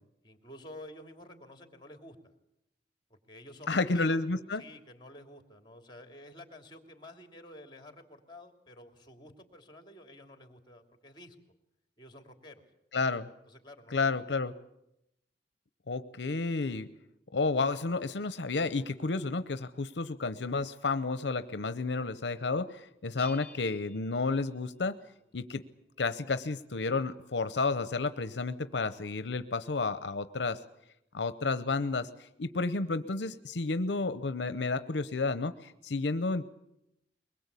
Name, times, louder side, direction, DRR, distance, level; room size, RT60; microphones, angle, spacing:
voice 1, 0.2-2.3 3.1-4.2 4.5-11.4 12.0-12.6 13.5-14.2, left 1 dB, 25° left, 6 dB, 2.9 m, -51 dB
voice 2, 3.7-4.6 12.9-13.3 13.9-14.5 15.9-16.9 17.3-25.0 25.3-25.6 26.0-30.6 31.1-36.4, left 3 dB, 75° left, 12 dB, 0.8 m, -31 dB
Bell, 23.2-25.0, left 2 dB, 5° left, 2.1 m, -53 dB
22.5 x 21.0 x 8.3 m, 0.83 s
head